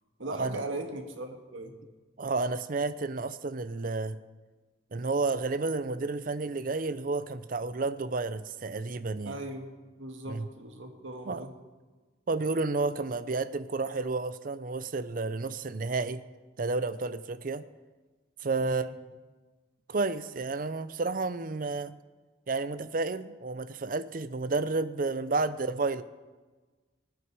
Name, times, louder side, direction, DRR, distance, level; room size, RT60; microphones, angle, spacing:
voice 1, 0.2-1.7 9.2-9.7 10.0-11.5 18.6-18.9, right 2 dB, 90° right, 4 dB, 1.8 m, -38 dB
voice 2, 2.2-4.2 4.9-9.4 10.3-10.5 11.3-11.4 12.3-16.2 16.6-17.6 18.4-18.9 19.9-21.9 22.5-26.0, right 3 dB, 45° right, 14 dB, 0.6 m, -31 dB
20.0 x 9.4 x 4.7 m, 1.3 s
head